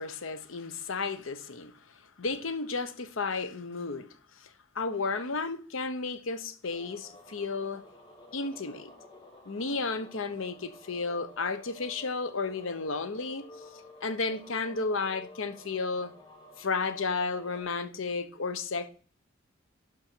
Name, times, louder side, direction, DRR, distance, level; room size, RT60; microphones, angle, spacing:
voice 1, 0.0-1.7 2.2-4.1 4.4-4.5 4.7-7.9 8.3-8.9 9.5-13.4 14.0-16.1 16.6-18.9, left 4 dB, 75° left, 0.9 m, -33 dB
sound 1, 6.7-17.6, left 1 dB, 25° left, 2.0 m, -52 dB
11.0 x 5.2 x 4.5 m
head